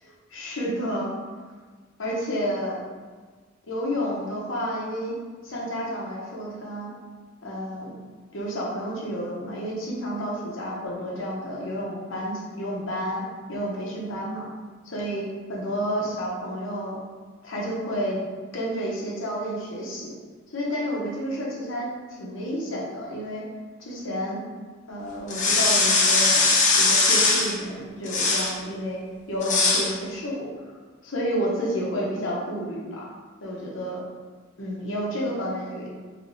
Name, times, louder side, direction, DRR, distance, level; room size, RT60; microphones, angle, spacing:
voice 1, 0.0-1.1 2.0-2.8 3.7-5.1 5.4-6.9 7.4-8.0 8.3-13.2 13.5-14.5 14.8-17.0 17.4-18.2 18.5-20.1 20.5-23.4 23.8-24.4 24.9-29.0 29.3-30.5 31.0-33.1 33.4-34.0 34.6-35.9, equal, 80° left, -4 dB, 0.9 m, -30 dB
sound 1, 25.3-27.5 28.1-28.5 29.4-29.9, left 3 dB, 40° left, 0.6 m, -20 dB
3.3 x 3.2 x 2.7 m, 1.4 s
head